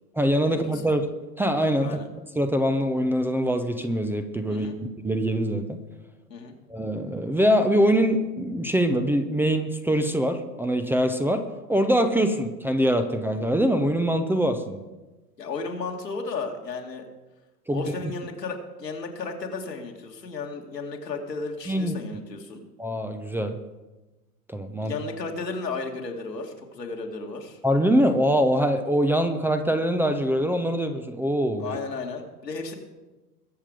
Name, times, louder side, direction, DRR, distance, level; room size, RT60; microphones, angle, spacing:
voice 1, 0.1-1.1 1.4-2.0 2.4-5.8 6.7-11.4 11.7-14.8 17.7-17.9 21.7-21.9 22.8-23.5 24.5-24.9 27.6-31.8, equal, 5° right, 7 dB, 0.7 m, -23 dB
voice 2, 4.5-4.8 6.3-6.5 15.4-17.0 17.7-22.6 24.8-27.6 31.6-32.7, left 4 dB, 80° left, 2 dB, 2.3 m, -34 dB
21.5 x 7.4 x 5.2 m, 1.1 s
figure-of-eight pair, 90°, 48 cm